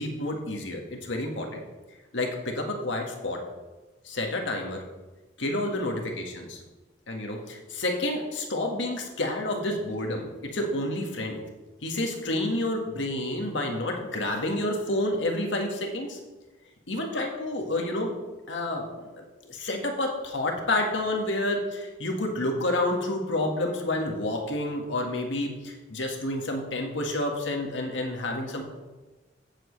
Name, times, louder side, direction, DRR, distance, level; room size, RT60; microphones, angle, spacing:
voice 1, 0.0-1.6 2.1-3.4 4.0-4.8 5.4-6.6 7.1-11.4 11.8-16.2 16.9-18.1 18.5-18.9 19.2-28.6, left 1 dB, 90° left, 1 dB, 1.7 m, -29 dB
15.5 x 7.5 x 3.3 m, 1.2 s
head